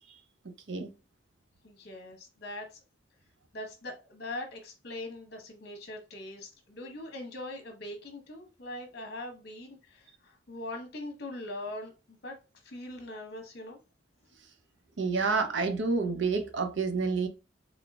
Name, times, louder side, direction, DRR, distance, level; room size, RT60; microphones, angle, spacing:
voice 1, 1.6-2.8 3.5-12.4 12.6-13.8, left 1 dB, 55° left, 1.0 m, -42 dB
voice 2, 15.0-17.3, right 4 dB, 70° right, 0.7 m, -28 dB
3.7 x 3.5 x 2.3 m
head